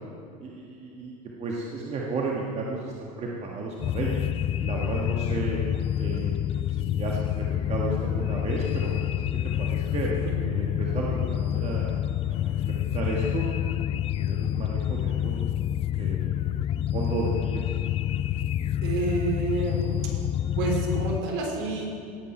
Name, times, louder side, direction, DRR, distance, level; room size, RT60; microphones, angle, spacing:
voice 1, 0.4-1.1 1.4-4.2 4.6-5.6 6.0-6.3 6.7-9.2 9.6-10.1 10.5-11.9 12.2-13.4 13.9-15.5 16.0-17.6, right 3 dB, 30° right, -3 dB, 1.7 m, -33 dB
sound 1, 3.8-21.2, left 11 dB, 30° left, 0.3 m, -28 dB
voice 2, 18.8-20.2 20.6-21.9, right 3 dB, 60° right, 0 dB, 3.5 m, -29 dB
18.0 x 8.3 x 4.5 m, 2.5 s
hypercardioid pair, 105°, 21 cm